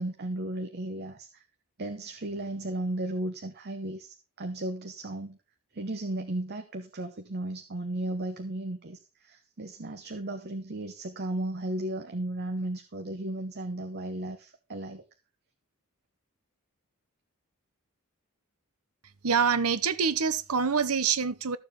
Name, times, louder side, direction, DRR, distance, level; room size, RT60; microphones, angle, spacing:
voice 1, 0.0-1.4 1.8-5.4 5.7-15.0, right 1 dB, 50° right, 1.0 m, -35 dB
voice 2, 19.2-21.6, right 6 dB, 85° right, 0.9 m, -26 dB
14.0 x 7.3 x 3.7 m
head